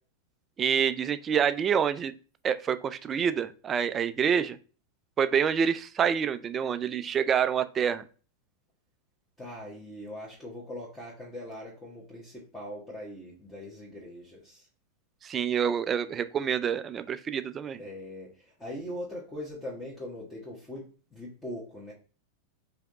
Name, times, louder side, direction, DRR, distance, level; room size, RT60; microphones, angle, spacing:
voice 1, 0.6-2.1 2.4-4.6 5.2-8.0 15.2-17.8, right 7 dB, 25° right, 13 dB, 0.3 m, -27 dB
voice 2, 9.4-14.7 17.7-21.9, left 1 dB, 10° left, -5 dB, 1.2 m, -41 dB
4.8 x 2.8 x 3.0 m, 0.38 s
figure-of-eight pair, 90°, 0 cm